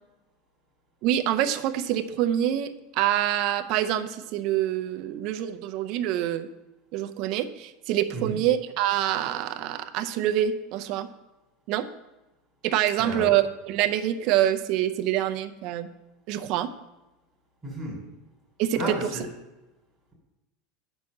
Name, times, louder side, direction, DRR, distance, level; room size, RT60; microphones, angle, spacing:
voice 1, 1.0-6.5 6.9-11.1 11.7-11.9 12.6-15.9 16.3-16.7 18.6-19.1, right 12 dB, 40° right, 8 dB, 0.6 m, -26 dB
voice 2, 13.0-13.4 17.6-18.0 18.7-19.2, right 1 dB, ahead, -5 dB, 3.2 m, -32 dB
8.3 x 6.2 x 6.4 m, 1.0 s
supercardioid pair, 175°, 0 cm